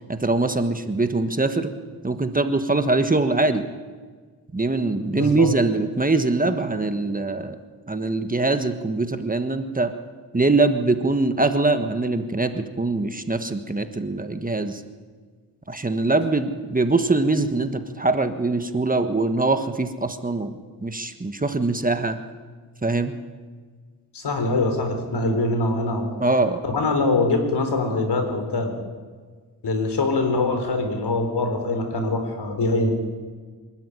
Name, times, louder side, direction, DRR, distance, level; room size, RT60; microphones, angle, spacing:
voice 1, 0.1-1.7 2.0-3.7 4.5-7.6 7.9-9.9 10.3-14.8 15.7-20.5 20.8-22.2 22.8-23.1 26.2-26.6, right 3 dB, 20° right, 8 dB, 1.4 m, -23 dB
voice 2, 5.1-5.5 24.1-26.1 26.6-28.7 29.6-32.9, left 2 dB, 75° left, 6 dB, 4.3 m, -23 dB
25.0 x 13.0 x 10.0 m, 1.5 s
wide cardioid pair, 100°, 40 cm